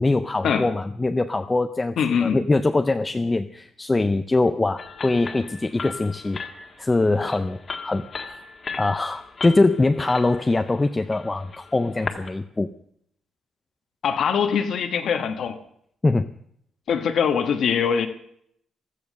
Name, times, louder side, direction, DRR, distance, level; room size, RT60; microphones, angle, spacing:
voice 1, 0.0-8.1 8.8-12.7 16.0-16.3, left 2 dB, 15° left, 9 dB, 0.5 m, -23 dB
voice 2, 2.0-2.4 14.0-15.6 16.9-18.1, left 7 dB, 55° left, 6 dB, 1.3 m, -22 dB
sound 1, 4.8-12.3, left 5 dB, 30° left, 1.6 m, -37 dB
16.0 x 13.5 x 6.5 m, 0.69 s
cardioid pair, 170°, 0 cm